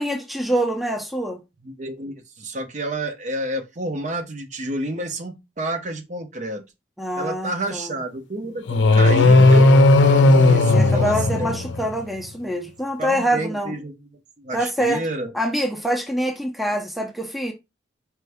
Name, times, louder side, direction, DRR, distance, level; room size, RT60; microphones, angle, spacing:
voice 1, 0.0-1.4 7.0-8.0 10.7-13.7 14.5-15.0 15.3-17.5, right 1 dB, ahead, 0.5 m, -25 dB
voice 2, 1.6-6.6 7.2-9.7 10.2-11.6 13.0-13.9 14.4-15.3, right 1 dB, 40° right, 0.7 m, -29 dB
sound 1, 8.7-12.0, left 2 dB, 80° left, 0.5 m, -14 dB
4.6 x 2.6 x 3.3 m
head